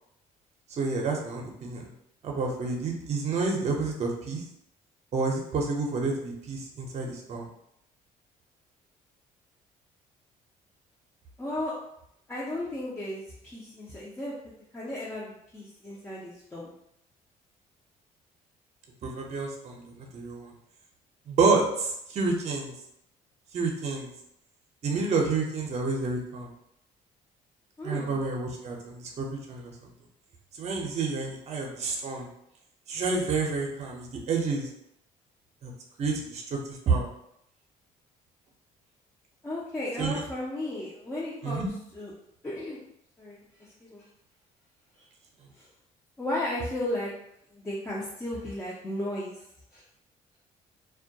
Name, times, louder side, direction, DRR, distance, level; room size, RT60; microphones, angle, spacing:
voice 1, 0.8-1.9 2.2-4.4 5.1-7.5 19.0-20.5 21.3-22.7 23.5-24.1 24.8-26.5 27.8-29.7 30.5-32.3 32.9-34.7 35.6-35.7 36.0-37.1 40.0-40.1 41.4-41.7, right 4 dB, 45° right, 1 dB, 0.6 m, -29 dB
voice 2, 11.4-11.8 12.3-16.7 27.8-28.2 39.4-42.1 42.4-42.8 43.2-44.1 45.0-45.1 45.5-45.7 46.2-47.1 47.5-49.5 49.7-49.8, left 1 dB, 15° left, -6 dB, 0.5 m, -35 dB
2.2 x 2.1 x 2.6 m, 0.75 s
cardioid pair, 95°, 15 cm